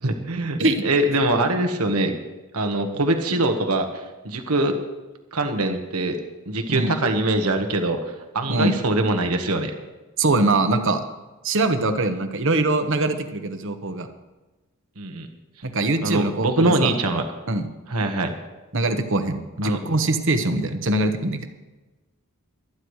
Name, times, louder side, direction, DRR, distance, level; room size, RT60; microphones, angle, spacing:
voice 1, 0.0-2.1 2.5-4.8 5.3-6.2 6.5-8.0 8.3-9.7 15.0-15.3 16.0-17.2 17.9-18.4 19.6-19.8, right 2 dB, 85° right, 5 dB, 1.4 m, -23 dB
voice 2, 10.2-11.0 11.4-14.1 15.6-16.9 17.5-17.7 18.7-21.4, right 2 dB, 60° right, 8 dB, 1.1 m, -22 dB
24.5 x 9.8 x 3.2 m, 1.2 s
head